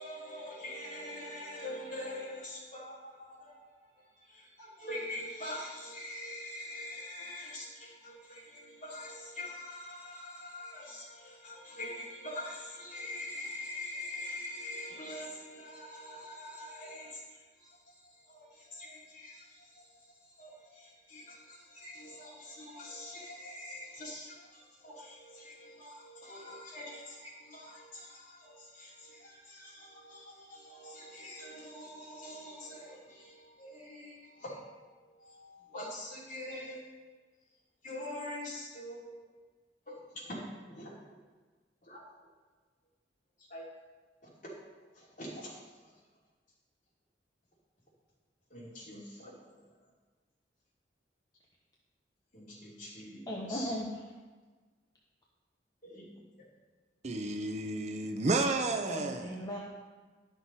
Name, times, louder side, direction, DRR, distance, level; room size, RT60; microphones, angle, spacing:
voice 1, 0.0-37.0 37.8-39.2 39.9-40.4 40.7-41.0 41.8-42.0 43.4-43.6 44.9-45.9 48.5-49.7 52.3-53.7 55.8-56.1, left 1 dB, 50° left, 3.1 m, -45 dB
voice 2, 53.3-53.9 58.9-59.6, equal, 20° left, 0.9 m, -37 dB
voice 3, 57.0-59.4, right 2 dB, 40° right, 0.6 m, -31 dB
11.5 x 6.1 x 4.1 m
head